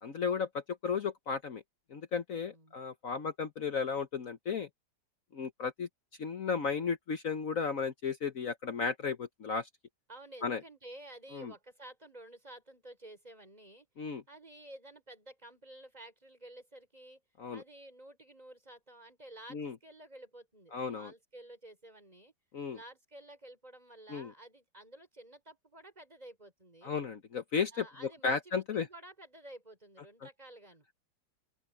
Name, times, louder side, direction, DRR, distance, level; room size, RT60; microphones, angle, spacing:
voice 1, 0.0-1.6 1.9-4.7 5.3-5.9 6.2-9.7 10.4-10.6 11.3-11.5 14.0-14.2 17.4-17.6 19.5-19.7 20.7-21.1 22.5-22.8 24.1-24.3 26.8-28.9, left 5 dB, 50° left, 1.2 m, -34 dB
voice 2, 2.4-2.8 10.1-13.9 14.3-17.2 17.5-22.3 22.7-27.0 27.7-30.9, right 1 dB, 20° right, 6.0 m, -52 dB
open air
omnidirectional pair, 2.1 m